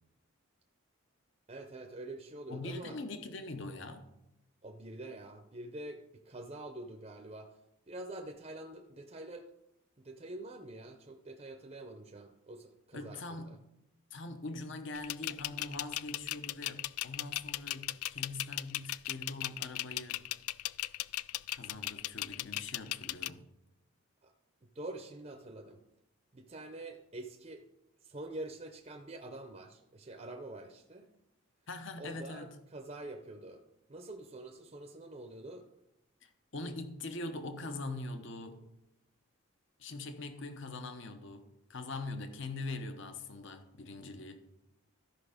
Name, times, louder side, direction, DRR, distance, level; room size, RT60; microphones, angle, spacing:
voice 1, 1.5-3.0 4.6-7.5 7.9-9.5 10.0-13.6 24.2-24.3 24.6-25.8 26.3-27.6 28.0-31.1 32.0-33.6 33.9-35.7, right 2 dB, 30° right, 0.6 m, -46 dB
voice 2, 2.5-4.1 12.9-13.6 14.1-20.2 21.5-23.5 31.7-32.5 36.2-38.7 39.8-44.4, left 2 dB, 55° left, 0.9 m, -42 dB
sound 1, 14.9-23.3, left 16 dB, 90° left, 0.3 m, -37 dB
13.5 x 5.6 x 5.0 m
head